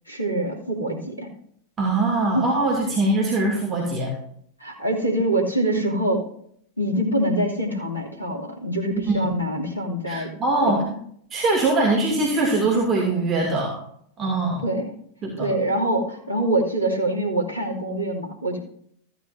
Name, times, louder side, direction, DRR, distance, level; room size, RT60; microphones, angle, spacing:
voice 1, 0.1-1.3 2.3-2.5 4.6-6.2 6.8-10.3 10.7-10.8 14.6-14.9 15.4-18.6, right 1 dB, 85° left, -1 dB, 2.7 m, -24 dB
voice 2, 1.8-4.1 8.9-9.6 10.1-10.9 11.3-13.8 14.2-14.6 15.2-15.5, right 2 dB, 25° right, -2 dB, 2.4 m, -22 dB
15.0 x 9.5 x 2.7 m, 0.65 s
figure-of-eight pair, 90°, 0 cm